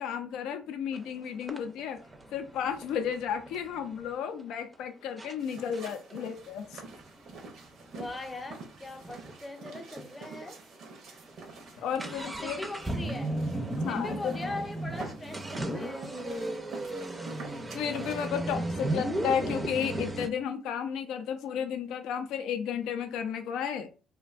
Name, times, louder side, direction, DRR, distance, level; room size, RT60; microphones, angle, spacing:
voice 1, 0.0-2.0 2.3-6.8 11.8-12.6 13.8-14.2 17.7-23.9, left 8 dB, 75° left, 0.4 m, -33 dB
sound 1, 0.9-1.0 1.5-4.1 4.7-4.8 5.2-5.3 5.7-9.4 9.7-9.8 10.0-10.1 10.7-10.8 11.1-20.3, right 1 dB, 20° right, 0.4 m, -35 dB
sound 2, 5.4-18.3, right 3 dB, 65° right, 0.6 m, -47 dB
voice 2, 7.9-10.6 12.2-13.4 13.9-17.0, left 2 dB, 20° left, 0.6 m, -41 dB
2.5 x 2.2 x 2.4 m
supercardioid pair, 65°, 0 cm